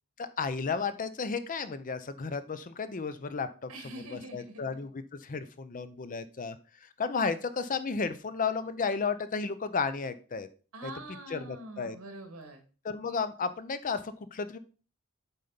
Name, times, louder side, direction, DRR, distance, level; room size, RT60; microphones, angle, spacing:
voice 1, 0.2-6.6 6.8-10.5 10.8-10.9 11.3-12.0 12.8-14.6, left 5 dB, 35° left, 12 dB, 0.5 m, -33 dB
voice 2, 3.7-4.8 10.7-12.6, right 2 dB, 70° right, 4 dB, 2.3 m, -44 dB
7.8 x 4.1 x 5.1 m, 0.37 s
head